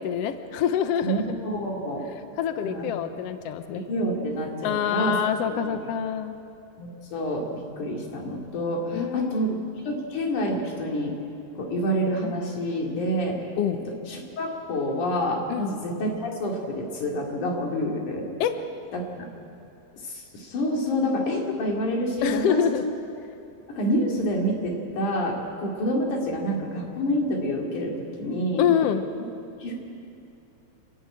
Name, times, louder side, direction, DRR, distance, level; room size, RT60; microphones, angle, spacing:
voice 1, 0.0-1.4 2.4-3.8 4.6-6.4 8.9-9.6 13.6-13.8 15.5-15.7 18.4-18.5 22.2-22.8 28.6-29.0, left 9 dB, 70° left, 9 dB, 1.7 m, -26 dB
voice 2, 1.0-2.1 2.7-2.9 3.9-5.1 5.4-5.8 6.8-9.5 9.9-11.1 11.6-13.4 14.1-18.3 18.9-19.2 20.0-22.9 23.7-27.9 28.2-28.7 29.6-29.7, equal, 85° left, 0 dB, 4.1 m, -28 dB
27.5 x 11.0 x 8.8 m, 2.7 s
omnidirectional pair, 3.4 m